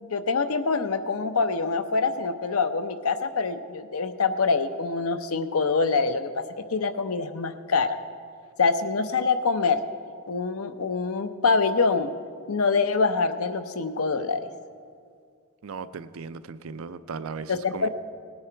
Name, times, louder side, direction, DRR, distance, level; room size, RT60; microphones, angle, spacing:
voice 1, 0.0-8.0 8.6-9.8 10.3-12.1 12.5-14.5 17.5-17.9, left 4 dB, 80° left, 9 dB, 0.7 m, -25 dB
voice 2, 15.6-17.9, right 5 dB, 70° right, 13 dB, 0.5 m, -37 dB
18.0 x 9.7 x 4.5 m, 2.1 s
head